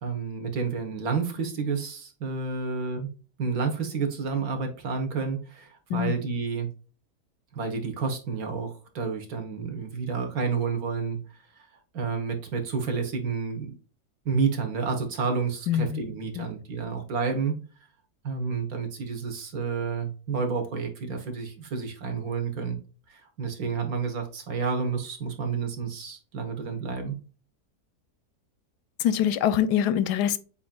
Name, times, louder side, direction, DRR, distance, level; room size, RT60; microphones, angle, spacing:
voice 1, 0.0-3.1 3.4-6.7 7.5-11.2 11.9-13.7 14.2-17.6 18.2-22.8 23.1-27.2, right 5 dB, 65° right, 1.6 m, -30 dB
voice 2, 15.7-16.0 16.4-16.5 29.0-30.4, left 10 dB, 85° left, 1.1 m, -24 dB
7.7 x 2.8 x 2.2 m
omnidirectional pair, 1.7 m